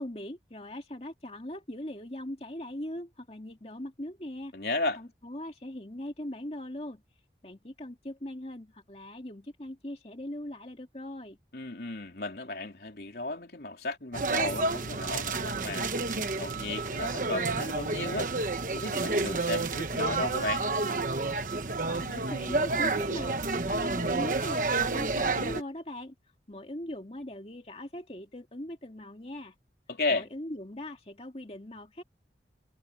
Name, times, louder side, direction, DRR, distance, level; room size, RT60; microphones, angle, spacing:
voice 1, 0.0-4.5 5.0-7.0 7.4-11.4 21.9-26.1 26.5-29.5 30.1-32.0, left 1 dB, 35° left, 2.3 m, -40 dB
voice 2, 4.5-5.0 11.5-18.3 18.7-20.6 29.9-30.2, left 2 dB, 65° left, 3.2 m, -34 dB
sound 1, 14.1-25.6, right 3 dB, 50° right, 1.2 m, -30 dB
head